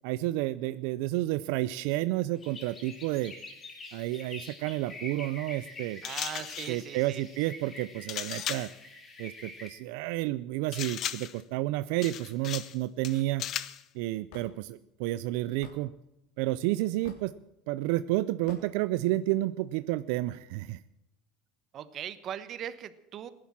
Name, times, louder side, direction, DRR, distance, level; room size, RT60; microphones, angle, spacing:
voice 1, 0.0-3.3 3.9-6.0 6.7-8.7 9.2-13.4 13.9-15.9 16.4-17.3 17.7-20.8, right 16 dB, 70° right, 15 dB, 0.5 m, -30 dB
sound 1, 2.4-9.7, left 2 dB, 20° left, 3.2 m, -47 dB
sound 2, 6.0-6.8 8.1-8.8 10.7-11.4 12.0-12.8 13.0-13.8, left 11 dB, 40° left, 0.8 m, -36 dB
voice 2, 6.0-7.2 21.7-23.3, right 10 dB, 35° right, 14 dB, 1.1 m, -39 dB
Hammer / Wood, 14.3-14.5 15.6-15.8 17.0-17.3 18.5-18.7, left 6 dB, 75° left, 3.3 m, -48 dB
17.0 x 11.0 x 7.4 m, 0.87 s
cardioid pair, 145°, 0 cm